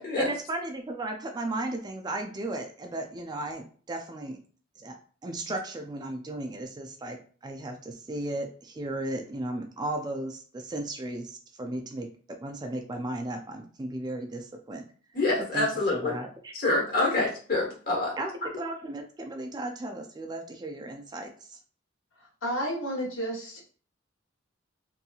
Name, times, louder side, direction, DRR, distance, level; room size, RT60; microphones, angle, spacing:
voice 1, 0.2-4.4 4.8-4.9 5.2-7.2 7.4-12.1 12.4-14.8 15.5-16.5 17.2-17.3 18.2-18.3 18.6-21.6, right 2 dB, 20° right, 4 dB, 0.3 m, -35 dB
voice 2, 15.1-16.1 16.5-18.1, left 2 dB, 50° left, -2 dB, 1.1 m, -26 dB
voice 3, 22.4-23.6, equal, 90° left, -2 dB, 1.1 m, -31 dB
2.8 x 2.6 x 2.3 m, 0.42 s
head